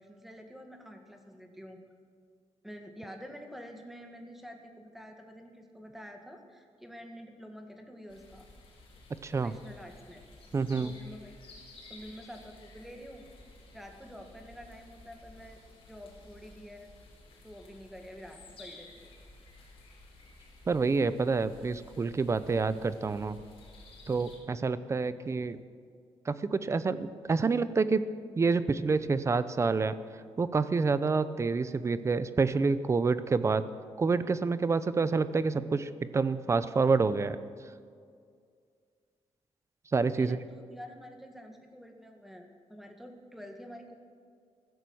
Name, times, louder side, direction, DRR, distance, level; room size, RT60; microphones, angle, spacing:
voice 1, 0.0-1.8 2.6-8.5 9.3-10.3 10.7-11.3 11.9-13.3 13.7-15.6 15.9-16.9 17.4-19.1 40.1-43.9, equal, ahead, 4 dB, 1.8 m, -48 dB
sound 1, 8.1-24.4, left 2 dB, 50° left, 4.6 m, -54 dB
voice 2, 9.2-9.5 10.5-10.9 20.7-23.4 24.1-25.6 26.3-28.0 28.4-30.0 30.4-33.7 34.0-37.4 39.9-40.4, right 4 dB, 25° right, 14 dB, 0.7 m, -28 dB
16.0 x 14.0 x 6.3 m, 2.1 s
wide cardioid pair, 160°, 11 cm